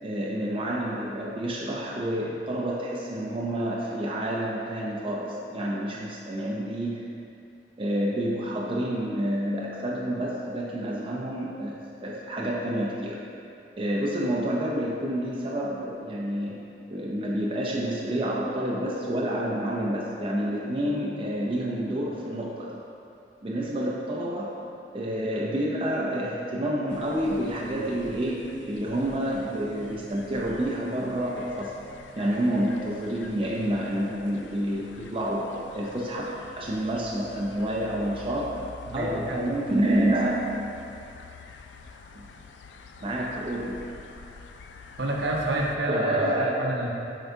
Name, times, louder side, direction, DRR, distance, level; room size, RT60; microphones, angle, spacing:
voice 1, 0.0-7.0 7.8-13.2 13.8-16.6 16.9-22.8 23.4-24.6 24.9-31.8 32.1-38.6 38.9-40.4 42.2-42.3 43.0-43.8 45.9-46.8, right 1 dB, 30° right, -4 dB, 0.5 m, -28 dB
sound 1, 26.4-26.5 27.5-32.7, right 2 dB, 45° left, 1.4 m, -50 dB
sound 2, 26.9-45.8, left 4 dB, 70° left, 0.3 m, -47 dB
voice 2, 38.9-39.4 45.0-46.3 46.6-46.9, right 1 dB, 65° right, -2 dB, 0.8 m, -29 dB
7.7 x 4.6 x 2.7 m, 2.6 s
head